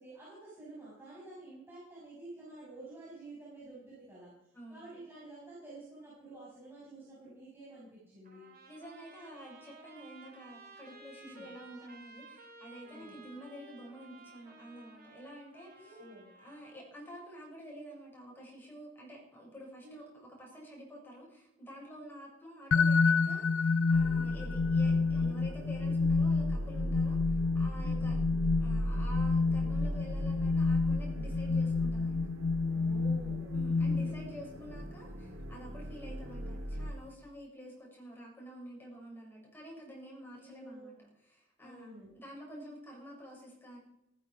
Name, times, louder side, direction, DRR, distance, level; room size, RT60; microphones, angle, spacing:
voice 1, 0.0-4.3 4.7-8.5 11.2-11.5 12.9-13.2 15.7-16.3 19.8-20.1 27.8-28.1 32.7-34.1 40.4-40.9 41.6-42.1, right 2 dB, 10° right, -8 dB, 6.2 m, -50 dB
Trumpet, 8.2-16.9, right 3 dB, 45° right, 3.7 m, -55 dB
voice 2, 8.7-16.0 16.4-32.2 33.5-40.9 41.2-43.8, equal, 10° left, -2 dB, 7.0 m, -49 dB
sound 1, 22.7-34.4, left 4 dB, 80° left, 0.7 m, -29 dB
sound 2, 23.9-36.9, equal, 75° right, 2.5 m, -38 dB
15.0 x 14.5 x 5.1 m, 0.84 s
head